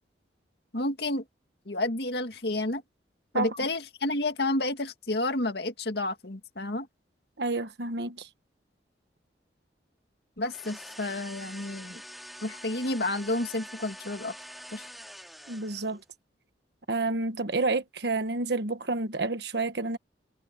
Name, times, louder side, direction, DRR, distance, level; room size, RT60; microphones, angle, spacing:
voice 1, 0.7-1.2 1.7-2.8 3.3-6.9 10.4-12.0 12.4-14.3 14.7-14.8, left 2 dB, 65° left, 2.2 m, -30 dB
voice 2, 7.4-8.3 15.5-16.0 16.9-20.0, right 3 dB, 65° right, 1.4 m, -29 dB
sound 1, 10.4-16.0, equal, ahead, 2.1 m, -45 dB
head